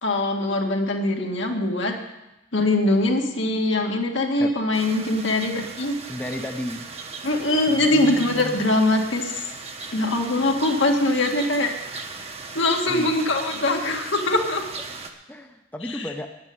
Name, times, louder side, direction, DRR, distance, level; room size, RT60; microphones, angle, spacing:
voice 1, 0.0-1.9 2.5-6.0 7.2-9.3 9.9-12.0 12.6-14.6 15.9-16.0, left 2 dB, 70° left, 1 dB, 1.9 m, -22 dB
sound 1, 4.7-15.1, right 4 dB, 30° right, 1.1 m, -37 dB
voice 2, 6.1-6.9 7.7-8.7 12.9-13.1 15.3-16.3, left 1 dB, 10° left, 3 dB, 0.8 m, -34 dB
9.6 x 9.0 x 9.4 m, 0.96 s
head